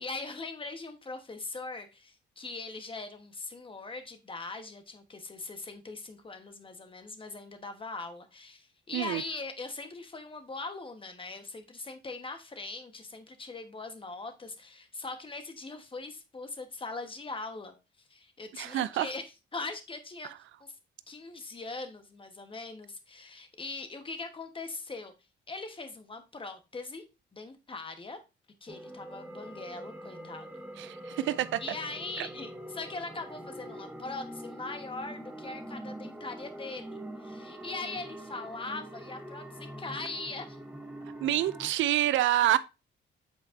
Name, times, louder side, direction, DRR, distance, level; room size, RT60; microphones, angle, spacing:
voice 1, 0.0-20.3 20.6-20.8 21.1-25.1 25.5-27.0 27.3-28.2 28.6-30.8 31.6-40.6, left 3 dB, 25° left, 1.3 m, -41 dB
voice 2, 18.5-19.1 30.8-31.6 32.2-32.3 41.2-42.6, right 13 dB, 75° right, 0.4 m, -27 dB
sound 1, 28.7-41.7, right 1 dB, 5° right, 1.1 m, -44 dB
8.2 x 4.4 x 2.7 m
cardioid pair, 90°, 20 cm